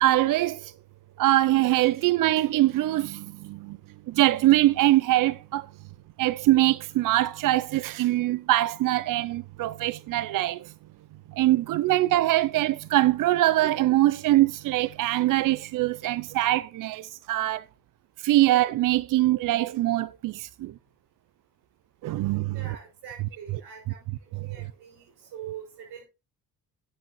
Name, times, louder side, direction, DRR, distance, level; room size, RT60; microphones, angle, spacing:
voice 1, 0.0-0.7 1.2-3.8 4.1-5.7 6.2-10.7 11.4-17.6 18.2-20.7 22.0-22.6, right 15 dB, 60° right, 0.4 m, -23 dB
voice 2, 22.5-24.0 24.4-26.0, right 9 dB, 80° right, 5.9 m, -43 dB
10.5 x 7.8 x 3.0 m
cardioid pair, 95°, 38 cm